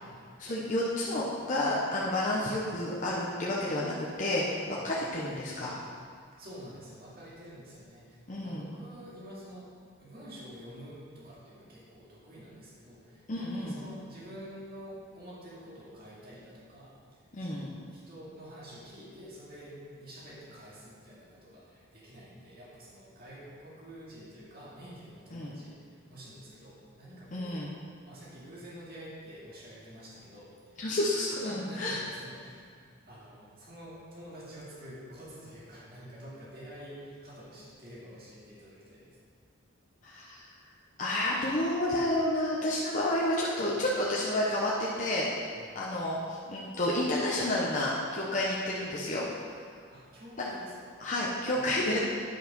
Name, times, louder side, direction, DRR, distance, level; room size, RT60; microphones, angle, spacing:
voice 1, 0.4-5.8 8.3-8.7 13.3-13.8 17.3-17.7 25.3-25.6 27.3-27.7 30.8-32.0 40.0-40.5 41.0-45.3 45.7-49.3 51.0-52.0, left 1 dB, 40° left, -5 dB, 0.8 m, -30 dB
voice 2, 6.4-9.7 10.0-27.5 28.0-30.9 31.4-32.8 33.1-39.2 45.5-45.7 49.9-50.9 51.5-51.8, equal, 45° right, -8 dB, 2.3 m, -48 dB
10.0 x 5.4 x 5.2 m, 2.1 s
head